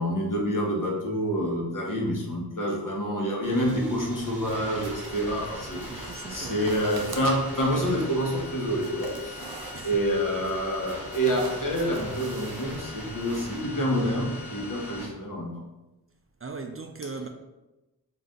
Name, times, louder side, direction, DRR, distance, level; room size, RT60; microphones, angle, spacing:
voice 1, 0.0-9.5 9.8-15.5, equal, 55° left, 1.1 m, -27 dB
sound 1, 3.4-15.1, left 1 dB, 5° right, 1.2 m, -40 dB
sound 2, 3.7-13.6, right 2 dB, 65° right, 0.7 m, -45 dB
voice 2, 5.7-6.7 7.1-7.2 9.7-9.9 16.4-17.3, right 4 dB, 35° right, 0.4 m, -38 dB
4.0 x 2.5 x 3.8 m
cardioid pair, 45°, 38 cm